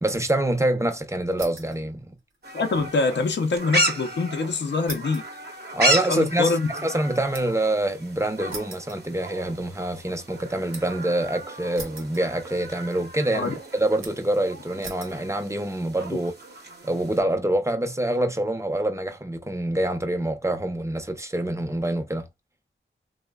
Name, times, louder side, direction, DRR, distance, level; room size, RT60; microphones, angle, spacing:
voice 1, 0.0-2.0 5.7-6.5 6.8-16.3 16.8-22.2, right 1 dB, 15° right, 0.6 m, -26 dB
sound 1, 1.3-1.8 2.2-3.7 4.0-4.1 4.9-7.7 8.5-9.6 10.0-11.0 11.7-12.6 12.9-13.5 14.0-14.4 14.8-15.2 15.9-16.3, right 3 dB, 80° right, 0.7 m, -43 dB
sound 2, 2.4-17.2, right 1 dB, 55° right, 0.8 m, -33 dB
voice 2, 2.5-5.2 6.1-6.7 13.3-13.5, left 3 dB, 60° left, 0.5 m, -24 dB
3.0 x 2.1 x 2.2 m
cardioid pair, 50°, 20 cm